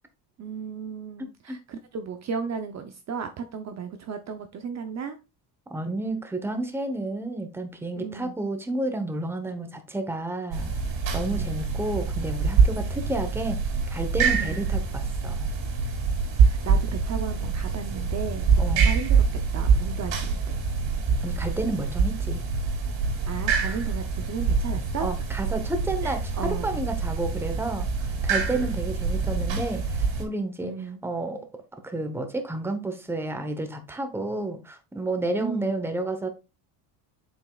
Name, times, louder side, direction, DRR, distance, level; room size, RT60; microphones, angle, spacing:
voice 1, 0.4-5.2 8.0-8.3 11.1-11.5 14.4-14.7 16.4-19.2 19.5-20.6 23.3-25.1 26.0-26.8 28.5-28.8 30.6-31.0 35.4-35.7, right 6 dB, 35° right, 0.7 m, -35 dB
voice 2, 1.2-1.6 5.7-10.7 11.1-13.6 13.9-15.5 18.6-18.9 21.2-22.4 23.5-23.8 25.0-30.7 31.0-31.5 31.7-36.3, right 2 dB, 5° right, 0.9 m, -31 dB
sound 1, 10.5-30.2, right 5 dB, 70° right, 2.6 m, -25 dB
7.6 x 5.5 x 2.3 m
cardioid pair, 135°, 46 cm